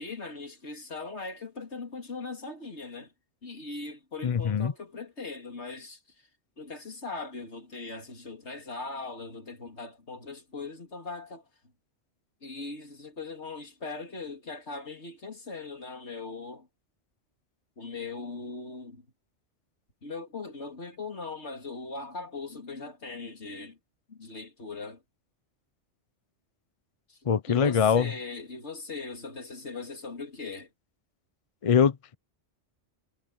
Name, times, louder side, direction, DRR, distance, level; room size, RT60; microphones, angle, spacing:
voice 1, 0.0-3.1 3.4-6.0 6.6-11.4 12.4-16.7 17.8-19.1 20.0-23.8 24.1-25.0 27.1-27.2 27.5-30.7, left 3 dB, 65° left, 3.3 m, -40 dB
voice 2, 4.2-4.7 27.3-28.1 31.6-32.1, left 7 dB, 40° left, 0.5 m, -23 dB
omnidirectional pair, 1.2 m